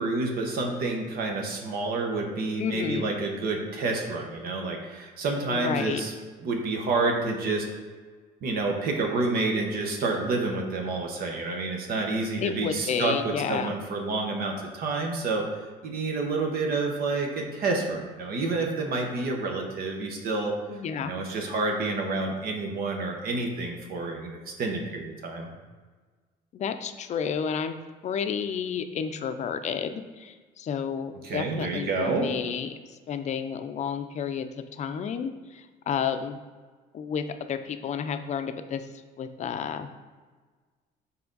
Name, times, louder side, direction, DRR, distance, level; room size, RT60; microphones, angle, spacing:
voice 1, 0.0-6.1 6.4-7.7 8.4-15.5 15.8-20.5 21.0-25.5 31.2-32.3, right 3 dB, 65° right, 2 dB, 1.0 m, -29 dB
voice 2, 2.6-3.0 5.5-6.0 12.4-13.7 20.7-21.1 26.5-27.8 28.0-36.4 36.9-38.9 39.2-39.9, left 7 dB, 45° left, 9 dB, 0.5 m, -31 dB
5.8 x 4.3 x 3.9 m, 1.4 s
cardioid pair, 110°, 17 cm